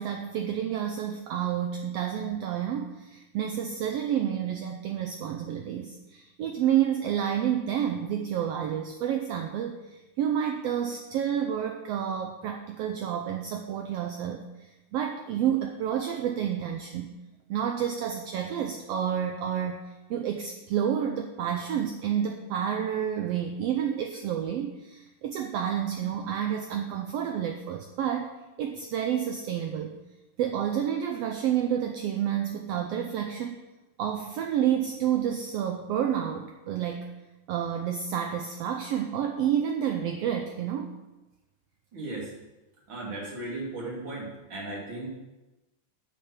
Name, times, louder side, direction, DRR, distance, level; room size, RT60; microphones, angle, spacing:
voice 1, 0.0-17.1 17.5-19.8 20.1-30.0 30.4-33.6 34.0-37.1 37.5-40.9, right 9 dB, 75° right, 4 dB, 1.6 m, -29 dB
voice 2, 41.9-42.3 42.9-45.1, right 2 dB, 45° right, -4 dB, 3.5 m, -36 dB
9.4 x 5.7 x 7.1 m, 1.0 s
omnidirectional pair, 3.3 m